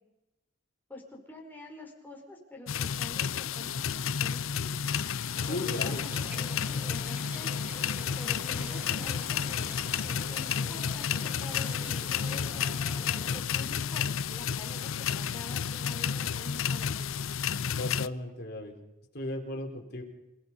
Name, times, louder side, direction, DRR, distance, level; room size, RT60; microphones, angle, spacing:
voice 1, 0.9-4.7 5.5-7.6 8.2-9.7 10.0-12.7 13.3-17.1, left 1 dB, 10° left, -1 dB, 5.1 m, -47 dB
sound 1, 2.7-18.1, left 7 dB, 80° left, 0.6 m, -31 dB
Wind instrument woodwind instrument, 3.5-13.1, left 2 dB, 40° right, 4.9 m, -55 dB
sound 2, 5.3-13.4, equal, 10° right, 1.7 m, -47 dB
voice 2, 5.5-6.0 17.8-18.7 19.1-20.0, left 1 dB, 50° left, 2 dB, 3.8 m, -35 dB
28.0 x 17.0 x 5.5 m, 0.98 s
head